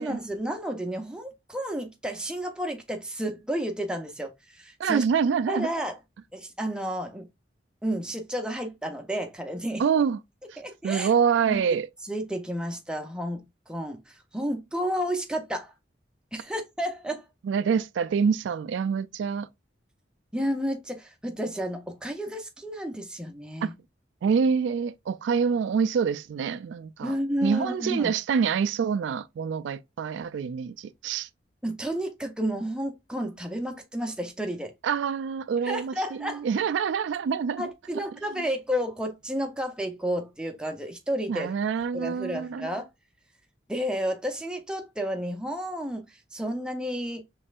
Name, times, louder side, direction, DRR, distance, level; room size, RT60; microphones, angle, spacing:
voice 1, 0.0-5.0 5.5-6.0 6.3-7.3 7.8-9.8 10.6-11.1 11.4-11.6 12.1-15.7 16.3-17.3 20.3-23.7 27.0-28.1 31.6-34.7 35.6-36.4 37.6-41.5 41.9-42.8 43.7-46.0 46.3-47.2, equal, 5° right, 0.6 m, -31 dB
voice 2, 4.8-5.7 9.8-10.2 10.5-11.9 17.4-19.5 23.6-23.7 24.2-27.1 27.4-31.3 34.8-37.7 37.9-38.0 38.3-38.4 41.3-42.7, right 6 dB, 80° right, 0.3 m, -26 dB
5.2 x 3.2 x 2.4 m
head